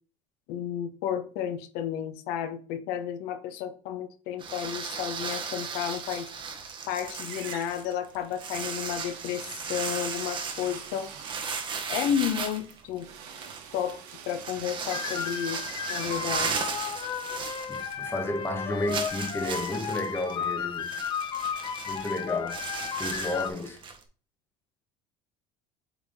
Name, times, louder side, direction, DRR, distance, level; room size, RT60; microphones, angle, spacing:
voice 1, 0.5-6.3 6.9-11.1 11.9-13.1 13.7-16.6, left 9 dB, 70° left, 0.8 m, -32 dB
sound 1, 4.4-18.2 18.5-18.6 18.9-24.0, right 5 dB, 30° right, 1.0 m, -36 dB
sound 2, 6.3-6.9 7.2-18.1, right 8 dB, 65° right, 1.2 m, -48 dB
sound 3, 14.9-23.5, left 7 dB, 30° left, 0.6 m, -34 dB
voice 2, 17.7-21.0 21.8-22.6 23.0-23.8, left 1 dB, 15° left, 1.2 m, -32 dB
8.2 x 3.6 x 3.5 m
cardioid pair, 130°, 16 cm